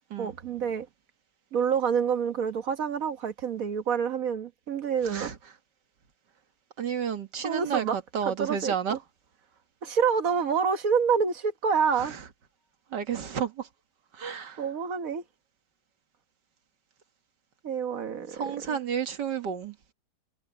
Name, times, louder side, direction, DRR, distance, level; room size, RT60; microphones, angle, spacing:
voice 1, 0.2-0.9 1.5-5.3 7.4-7.9 8.4-9.0 9.8-12.1 14.6-15.2 17.6-18.7, right 6 dB, 55° right, 1.5 m, -27 dB
voice 2, 5.0-5.4 6.8-9.0 12.0-12.3 12.9-13.7 14.1-14.7 18.3-19.8, right 8 dB, 80° right, 2.3 m, -31 dB
omnidirectional pair, 1.8 m